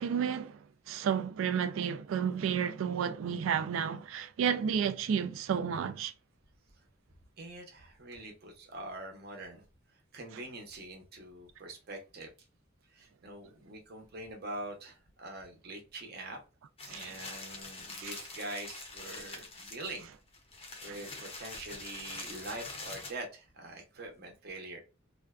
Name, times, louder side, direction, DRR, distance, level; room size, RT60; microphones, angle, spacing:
voice 1, 0.0-6.1 16.9-17.1 17.9-18.1 20.9-21.0, right 7 dB, 70° right, 0.3 m, -32 dB
voice 2, 7.4-12.3 12.9-16.4 16.9-20.1 20.8-24.8, right 2 dB, 50° right, 0.7 m, -44 dB
sound 1, 16.8-23.1, left 3 dB, 30° left, 0.5 m, -45 dB
2.4 x 2.2 x 2.3 m
head